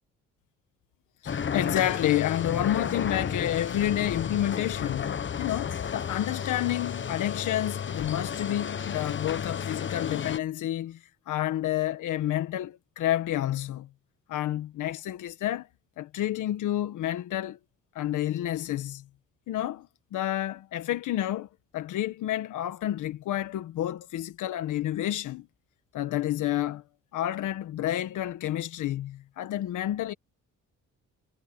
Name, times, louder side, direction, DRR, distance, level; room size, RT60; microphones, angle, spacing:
voice 1, 1.2-11.0 11.3-13.9 14.3-15.7 16.0-17.6 17.9-19.0 19.5-25.5 25.9-26.8 27.1-30.1, left 13 dB, 80° left, 1.7 m, -29 dB
sound 1, 1.3-10.4, left 7 dB, 40° left, 1.2 m, -32 dB
cardioid pair, 90°, 30 cm